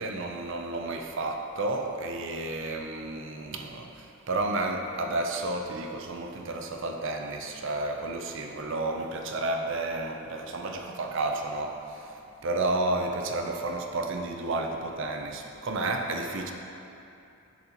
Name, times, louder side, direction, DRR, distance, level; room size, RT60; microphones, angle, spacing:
voice 1, 0.0-16.5, right 2 dB, 60° right, 3 dB, 0.5 m, -31 dB
10.5 x 4.1 x 2.9 m, 2.7 s
head